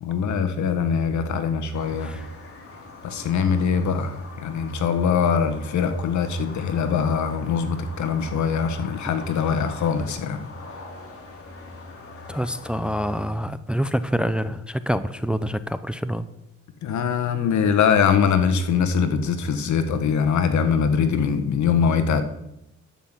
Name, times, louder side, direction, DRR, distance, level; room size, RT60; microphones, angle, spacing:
voice 1, 0.0-2.2 3.0-10.5 16.8-22.2, left 6 dB, 70° left, 9 dB, 1.4 m, -22 dB
sound 1, 1.7-13.3, left 3 dB, 50° left, 3.1 m, -42 dB
voice 2, 12.3-16.3, equal, 5° right, 13 dB, 0.5 m, -26 dB
12.5 x 5.8 x 7.4 m, 0.85 s
cardioid pair, 90°, 30 cm